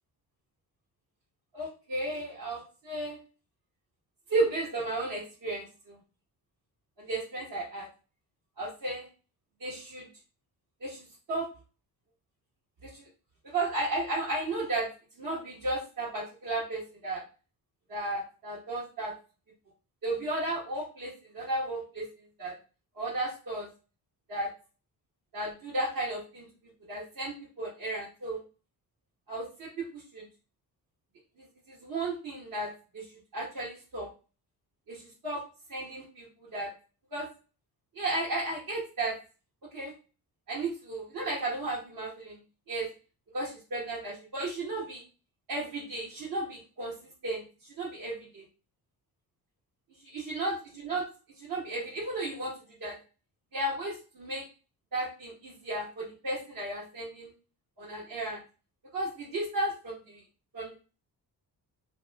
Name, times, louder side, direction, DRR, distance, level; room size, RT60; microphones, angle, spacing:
voice 1, 1.5-3.2 4.3-6.0 7.0-7.9 8.6-9.1 9.6-10.1 10.8-11.5 12.8-13.1 13.4-14.9 15.2-17.2 17.9-19.1 20.0-22.1 22.4-22.5 23.0-23.7 24.3-24.5 25.3-26.5 26.9-28.4 29.3-30.3 31.4-33.0 33.3-34.1 34.9-35.4 35.7-36.7 37.1-37.3 37.9-39.1 39.7-39.9 40.5-42.4 42.7-42.9 43.3-45.0 45.5-47.0 47.2-48.4 50.0-51.1 51.4-52.5 52.8-53.0 53.5-54.4 54.9-57.3 57.8-58.4 58.9-60.2 60.5-60.7, right 2 dB, 60° right, -7 dB, 1.5 m, -34 dB
2.9 x 2.1 x 4.0 m, 0.34 s
cardioid pair, 85°, 40 cm